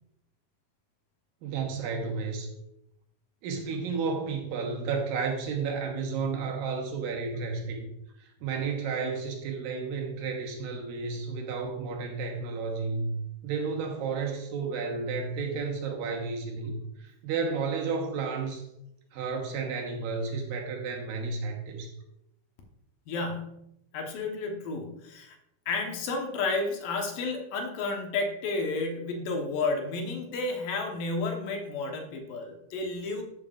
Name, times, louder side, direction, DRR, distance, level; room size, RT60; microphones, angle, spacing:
voice 1, 1.4-2.5 3.4-7.9 8.2-13.2 13.4-16.7 17.0-18.6 19.1-21.9, right 4 dB, 75° right, 1 dB, 2.9 m, -32 dB
voice 2, 23.1-25.4 25.7-33.2, left 3 dB, 70° left, 2 dB, 2.7 m, -32 dB
13.0 x 7.0 x 2.4 m, 0.82 s
omnidirectional pair, 4.2 m